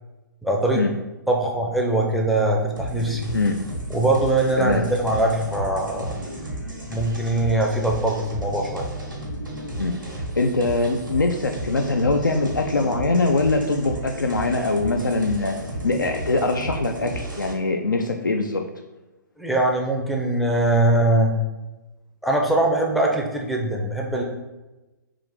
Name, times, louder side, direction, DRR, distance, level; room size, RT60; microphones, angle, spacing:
voice 1, 0.4-0.8 1.3-3.3 3.9-6.1 6.9-8.8 19.4-21.4 22.2-24.2, right 2 dB, ahead, -2 dB, 0.4 m, -22 dB
sound 1, 2.8-17.5, right 1 dB, 85° right, 1.0 m, -33 dB
voice 2, 10.4-15.6 15.8-18.6, left 3 dB, 80° left, 3 dB, 0.4 m, -22 dB
3.8 x 2.4 x 4.5 m, 1.1 s
figure-of-eight pair, 120°, 10 cm